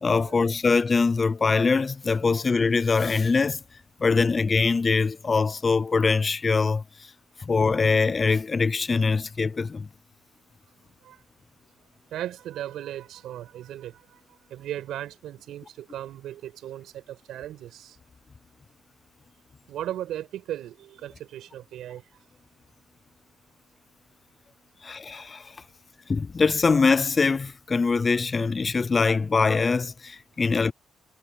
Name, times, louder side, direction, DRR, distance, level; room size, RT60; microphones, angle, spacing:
voice 1, 0.0-3.6 4.0-7.1 7.4-9.9 24.8-25.6 26.1-30.7, left 4 dB, 35° left, 0.5 m, -23 dB
voice 2, 12.1-14.2 14.5-18.0 19.7-22.0 25.1-25.2, right 12 dB, 80° right, 5.7 m, -37 dB
cardioid pair, 90°, 0 cm